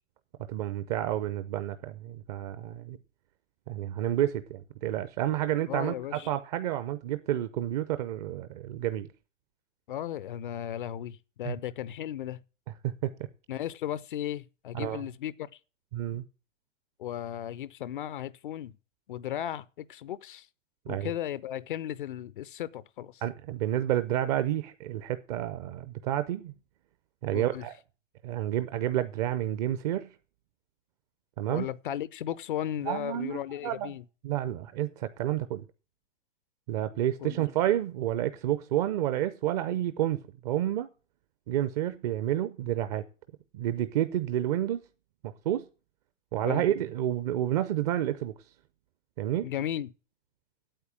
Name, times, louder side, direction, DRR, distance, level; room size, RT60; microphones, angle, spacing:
voice 1, 0.5-3.0 3.7-9.1 11.4-11.6 12.8-13.1 14.7-15.0 15.9-16.2 20.9-21.1 23.2-26.5 27.2-27.8 28.2-30.1 31.4-31.7 32.8-33.9 34.2-35.6 36.7-40.9 41.5-43.0 43.5-44.8 45.2-45.6 46.3-48.3 49.2-49.5, right 12 dB, 35° right, 0.6 m, -30 dB
voice 2, 5.7-6.3 9.9-12.4 13.5-15.5 17.0-18.7 19.1-20.5 20.9-23.1 27.3-27.6 31.5-34.0 37.2-37.4 46.5-46.6 49.4-49.9, left 11 dB, 45° left, 0.5 m, -35 dB
8.9 x 8.2 x 7.5 m
figure-of-eight pair, 105°, 38 cm